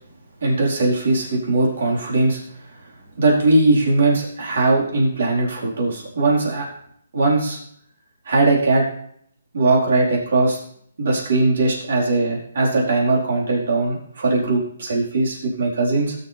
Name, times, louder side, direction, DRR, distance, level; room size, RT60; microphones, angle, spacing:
voice 1, 0.4-2.4 3.2-6.7 7.1-7.6 8.3-8.9 9.5-10.6 11.0-16.1, right 2 dB, 60° right, -3 dB, 4.5 m, -19 dB
19.0 x 7.1 x 3.5 m, 0.66 s
hypercardioid pair, 170°, 0 cm